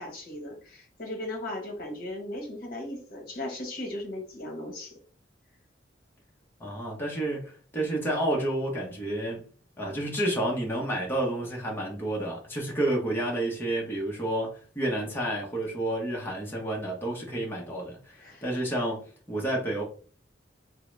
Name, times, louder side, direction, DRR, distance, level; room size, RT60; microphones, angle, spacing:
voice 1, 0.0-5.0 18.2-18.4, left 1 dB, 50° left, 1.0 m, -37 dB
voice 2, 6.6-9.5 9.8-19.8, right 1 dB, 10° left, 0.8 m, -30 dB
3.6 x 2.0 x 3.2 m
head